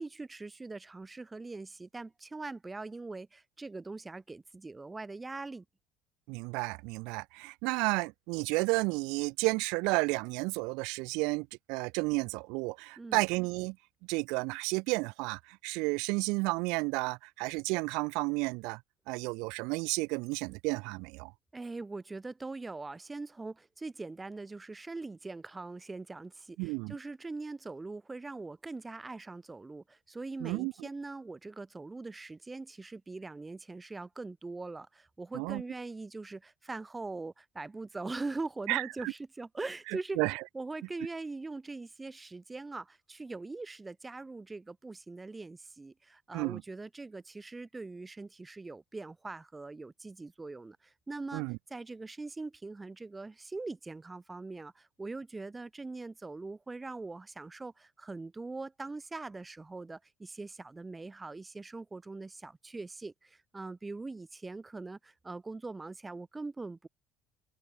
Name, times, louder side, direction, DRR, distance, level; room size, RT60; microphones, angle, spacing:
voice 1, 0.0-5.6 13.0-13.2 21.5-66.9, right 3 dB, 20° right, 1.4 m, -42 dB
voice 2, 6.3-13.8 14.1-18.8 19.1-21.3 26.6-27.0 30.4-30.9 35.3-35.6 38.7-39.1 40.2-40.4 46.3-46.6 51.3-51.6, right 28 dB, 65° right, 0.4 m, -32 dB
open air
hypercardioid pair, 65°, 0 cm